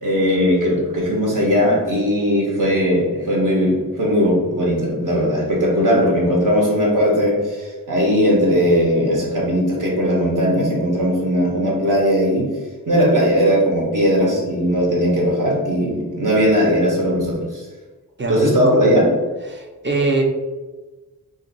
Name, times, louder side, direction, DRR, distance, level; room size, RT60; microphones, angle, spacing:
voice 1, 0.0-12.5 12.9-17.6 18.3-19.0, equal, 60° right, -3 dB, 1.0 m, -18 dB
voice 2, 18.2-18.9 19.5-20.2, right 2 dB, 30° right, 1 dB, 0.6 m, -22 dB
2.6 x 2.5 x 3.9 m, 1.2 s
wide cardioid pair, 75°, 35 cm